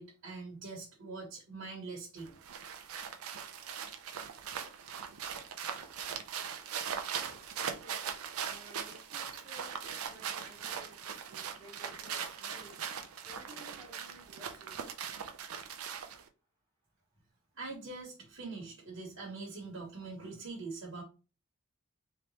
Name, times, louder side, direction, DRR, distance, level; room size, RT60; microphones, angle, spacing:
voice 1, 0.0-2.4 17.5-21.0, right 3 dB, 65° right, -3 dB, 1.3 m, -43 dB
sound 1, 2.2-16.3, right 7 dB, 85° right, 0.5 m, -40 dB
voice 2, 7.1-8.0 8.4-12.8 13.2-14.8, right 1 dB, 25° right, -3 dB, 1.2 m, -55 dB
3.4 x 3.0 x 2.9 m, 0.32 s
head